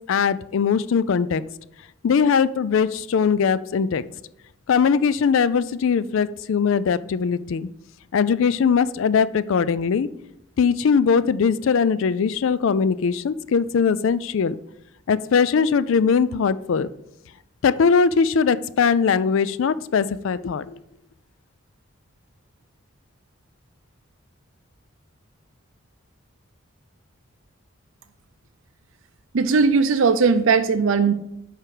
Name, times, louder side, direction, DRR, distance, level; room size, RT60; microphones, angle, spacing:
voice 1, 0.1-1.4 2.0-4.0 4.7-7.7 8.1-10.1 10.6-14.6 15.1-16.9 17.6-20.7, left 6 dB, 65° left, 16 dB, 0.4 m, -20 dB
voice 2, 29.3-31.1, right 5 dB, 65° right, 9 dB, 0.4 m, -18 dB
7.6 x 5.0 x 4.8 m, 0.81 s
head